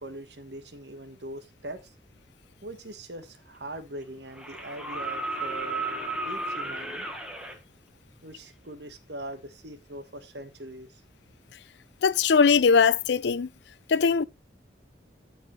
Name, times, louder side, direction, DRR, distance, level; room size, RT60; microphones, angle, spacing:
voice 1, 0.0-1.9 2.6-7.1 8.2-11.0, right 1 dB, 65° right, 1.3 m, -41 dB
sound 1, 3.2-3.3 4.3-7.6 9.3-9.4, right 2 dB, 5° right, 1.4 m, -33 dB
voice 2, 12.0-13.5 13.9-14.2, left 5 dB, 70° left, 0.4 m, -20 dB
13.0 x 4.8 x 3.1 m
head